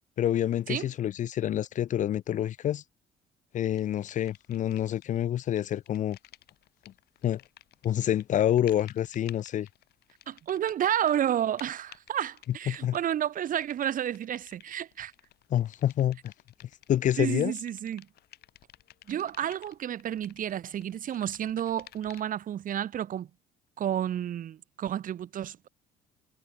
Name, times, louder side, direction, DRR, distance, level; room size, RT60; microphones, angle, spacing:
voice 1, 0.2-2.8 3.5-6.2 7.2-7.4 7.8-9.7 12.7-13.0 15.5-16.3 16.9-17.5, left 11 dB, 45° left, 0.5 m, -27 dB
sound 1, 3.8-5.2 5.4-22.5, left 14 dB, 70° left, 4.6 m, -55 dB
voice 2, 10.3-15.1 17.2-18.1 19.1-23.3 23.8-25.7, right 10 dB, 55° right, 2.2 m, -31 dB
cardioid pair, 110°, 17 cm